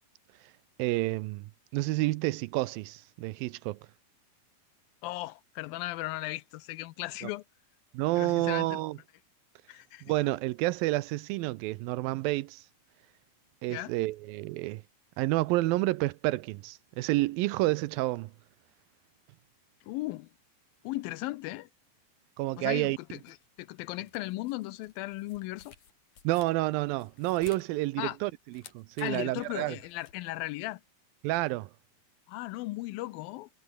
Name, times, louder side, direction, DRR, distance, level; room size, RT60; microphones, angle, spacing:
voice 1, 0.8-3.8 7.2-7.3 7.9-9.0 10.0-12.6 13.6-14.8 15.2-18.3 22.4-23.0 26.2-29.8 31.2-31.7, right 19 dB, 80° right, 2.3 m, -29 dB
voice 2, 5.0-7.4 8.2-8.8 9.7-10.1 13.7-13.9 19.8-20.3 20.8-21.7 22.6-25.7 28.0-28.2 29.0-30.8 32.3-33.5, left 18 dB, 80° left, 2.3 m, -37 dB
sound 1, 23.0-30.3, left 8 dB, 55° left, 3.6 m, -56 dB
omnidirectional pair, 4.3 m